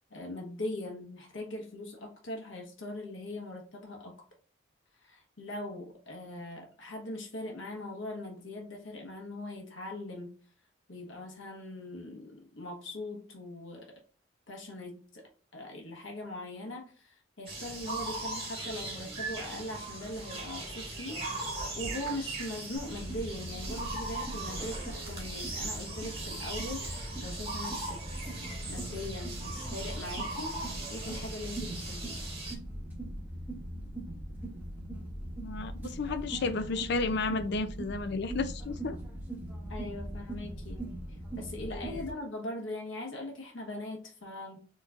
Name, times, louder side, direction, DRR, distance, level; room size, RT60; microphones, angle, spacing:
voice 1, 0.0-4.1 5.0-10.3 10.9-14.0 14.5-15.3 15.5-28.0 28.7-30.6 30.9-32.2 39.7-40.8 41.4-44.7, left 1 dB, 75° left, 1 dB, 1.2 m, -41 dB
sound 1, 17.5-32.6, right 2 dB, 30° right, 1.4 m, -39 dB
sound 2, 22.8-42.1, right 1 dB, 10° right, 1.0 m, -41 dB
voice 2, 35.4-39.0 41.7-42.0, left 3 dB, 60° left, 10 dB, 0.5 m, -32 dB
4.7 x 3.1 x 2.4 m, 0.40 s
head